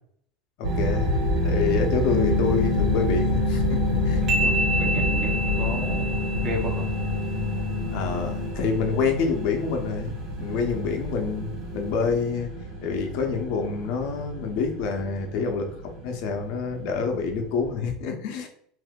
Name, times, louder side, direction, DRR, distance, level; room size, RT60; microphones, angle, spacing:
voice 1, 0.6-1.2 1.4-4.2 7.9-12.5 12.8-18.5, left 5 dB, 65° left, 4 dB, 0.7 m, -27 dB
sound 1, 0.6-17.7, equal, 75° right, 1.2 m, -28 dB
sound 2, 2.1-8.5, left 12 dB, 15° left, 0.8 m, -30 dB
voice 2, 4.2-6.9, right 1 dB, 30° right, 2 dB, 0.7 m, -34 dB
sound 3, 4.3-7.8, right 2 dB, 45° right, 1.1 m, -29 dB
2.7 x 2.6 x 3.6 m, 0.63 s
supercardioid pair, 135°, 0 cm